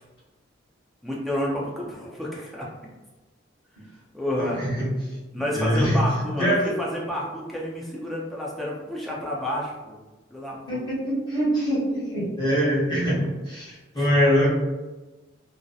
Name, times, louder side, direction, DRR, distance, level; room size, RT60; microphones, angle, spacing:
voice 1, 1.0-2.7 4.1-4.6 5.3-10.0 10.3-10.8 13.1-13.3 14.0-14.1, left 1 dB, ahead, -5 dB, 0.5 m, -30 dB
voice 2, 4.5-4.9 5.5-6.0 6.4-6.7 10.7-13.2 13.4-14.5, equal, 25° left, -8 dB, 1.0 m, -23 dB
2.6 x 2.1 x 2.3 m, 1.2 s
head